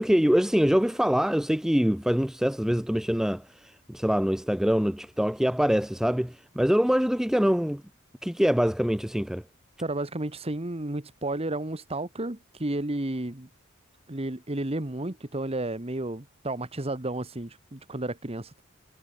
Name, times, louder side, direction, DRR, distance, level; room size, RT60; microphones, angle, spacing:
voice 1, 0.0-7.8 8.2-9.4, equal, ahead, 0.5 m, -24 dB
voice 2, 9.8-13.5 14.1-18.6, right 2 dB, 25° right, 1.5 m, -32 dB
head